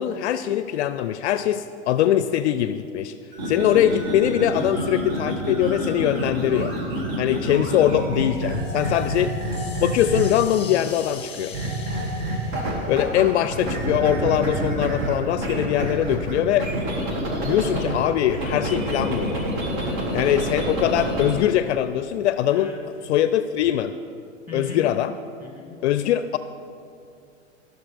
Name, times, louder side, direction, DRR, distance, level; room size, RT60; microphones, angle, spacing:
voice 1, 0.0-3.1 3.5-6.8 7.2-9.3 9.8-11.5 12.9-16.7 17.4-19.4 20.1-22.7 23.1-23.9 24.5-25.1 25.8-26.4, left 11 dB, 60° left, 12 dB, 0.5 m, -22 dB
sound 1, 3.3-10.5 11.5-13.2 13.5-17.9 18.3-21.4, right 1 dB, 50° right, 2.4 m, -27 dB
sound 2, 8.2-14.1, left 6 dB, 15° left, 1.4 m, -43 dB
voice 2, 8.8-9.3 19.8-20.2 20.5-20.8 22.5-23.2 24.5-24.9 25.4-25.9, left 1 dB, 5° right, -1 dB, 2.5 m, -40 dB
16.5 x 6.5 x 3.5 m, 2.4 s
hypercardioid pair, 110°, 38 cm